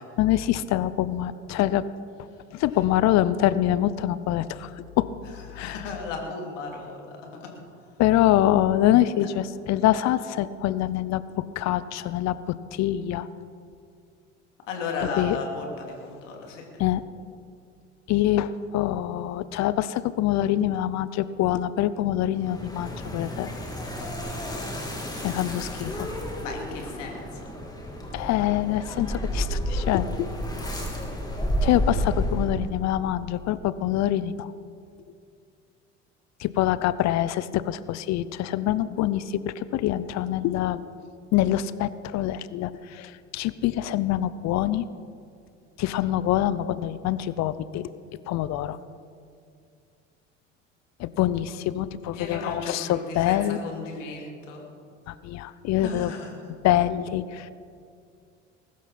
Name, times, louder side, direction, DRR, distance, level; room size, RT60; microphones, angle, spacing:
voice 1, 0.2-1.8 2.5-5.1 5.6-5.8 8.0-13.3 15.2-15.4 16.8-17.0 18.1-23.5 25.2-26.1 28.1-30.3 31.6-34.5 36.4-40.8 41.3-44.9 45.8-47.9 48.3-48.8 51.0-53.6 55.1-56.1 56.6-57.5, left 13 dB, 45° left, 16 dB, 0.7 m, -25 dB
voice 2, 5.5-7.5 14.7-16.6 26.4-27.4 52.1-54.6 55.8-56.3, left 4 dB, 75° left, 1 dB, 2.9 m, -35 dB
sound 1, 22.4-32.8, equal, 10° left, 3.1 m, -31 dB
21.0 x 12.5 x 4.3 m, 2.3 s
figure-of-eight pair, 65°, 38 cm